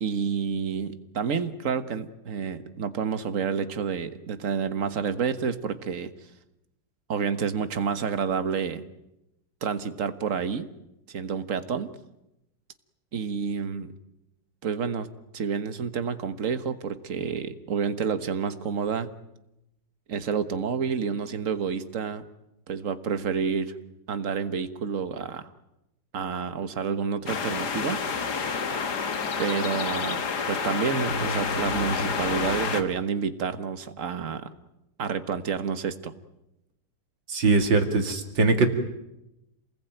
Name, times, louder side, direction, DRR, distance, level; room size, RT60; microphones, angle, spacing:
voice 1, 0.0-6.1 7.1-8.8 9.6-10.7 11.1-11.9 13.1-13.9 14.6-15.1 15.3-19.1 20.1-22.2 22.7-23.7 24.1-25.5 26.1-28.2 29.4-34.5 35.0-36.1, right 6 dB, 45° right, 10 dB, 1.6 m, -29 dB
sound 1, 27.3-32.8, left 5 dB, 60° left, 2.2 m, -29 dB
voice 2, 37.3-38.7, right 3 dB, 85° right, 5 dB, 3.0 m, -21 dB
28.5 x 20.5 x 9.1 m, 0.90 s
omnidirectional pair, 2.0 m